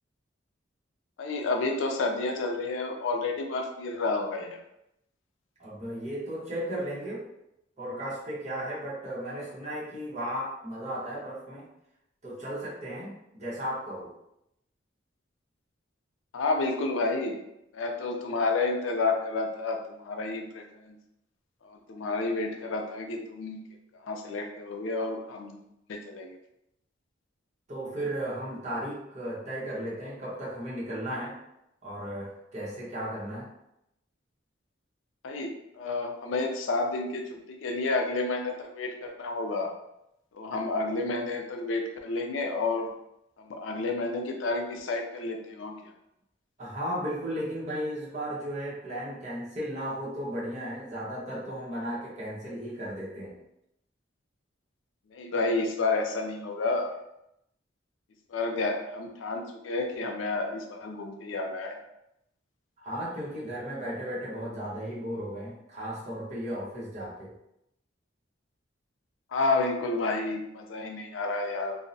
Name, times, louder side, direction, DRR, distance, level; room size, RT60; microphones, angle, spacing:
voice 1, 1.2-4.6 16.3-17.4 17.7-20.9 21.6-23.6 24.0-25.6 25.9-26.4 35.2-39.7 40.3-42.9 43.4-45.7 55.1-56.9 58.3-61.8 69.3-71.8, left 3 dB, 90° left, 3 dB, 0.4 m, -30 dB
voice 2, 5.6-7.2 7.8-11.7 12.2-14.1 27.7-31.4 31.8-33.5 46.6-53.4 62.8-67.3, equal, 40° right, -7 dB, 0.9 m, -35 dB
2.6 x 2.0 x 2.6 m, 0.82 s
head